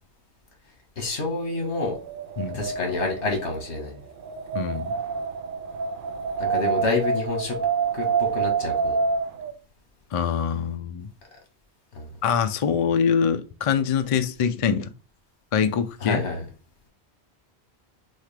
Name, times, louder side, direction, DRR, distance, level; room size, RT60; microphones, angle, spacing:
voice 1, 1.0-2.0 2.5-4.0 6.4-7.6 7.9-9.0 11.9-12.1 16.0-16.5, left 3 dB, 85° left, 1.7 m, -28 dB
Wind, 1.6-9.5, right 5 dB, 60° right, 0.7 m, -28 dB
voice 2, 4.5-4.9 10.1-11.1 12.2-14.9 15.5-16.2, left 7 dB, 55° left, 0.3 m, -24 dB
6.2 x 2.4 x 3.3 m
omnidirectional pair, 1.1 m